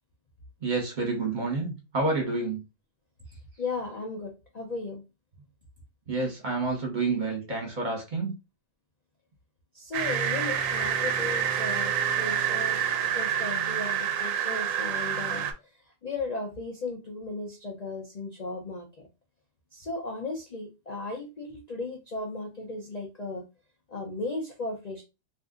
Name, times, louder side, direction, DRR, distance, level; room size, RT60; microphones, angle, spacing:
voice 1, 0.6-2.6 6.1-8.3, right 3 dB, 35° right, 1.1 m, -29 dB
voice 2, 3.6-5.0 9.7-15.5 16.0-19.1 19.7-23.4 23.9-25.0, left 2 dB, 45° left, 0.5 m, -36 dB
sound 1, 9.9-15.5, right 8 dB, 75° right, 0.9 m, -28 dB
2.6 x 2.5 x 3.7 m
omnidirectional pair, 1.5 m